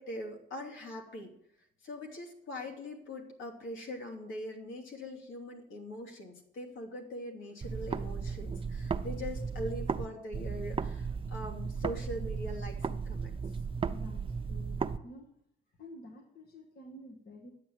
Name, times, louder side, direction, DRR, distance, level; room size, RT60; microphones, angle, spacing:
voice 1, 0.0-1.3 1.8-13.3, left 1 dB, 75° left, 2 dB, 2.8 m, -42 dB
sound 1, 7.6-10.1 10.3-15.0, right 5 dB, 25° right, 0.7 m, -35 dB
voice 2, 13.9-15.4 15.8-17.5, left 1 dB, 50° left, 3 dB, 1.8 m, -50 dB
10.5 x 7.8 x 7.8 m, 0.75 s
cardioid pair, 90°, 20 cm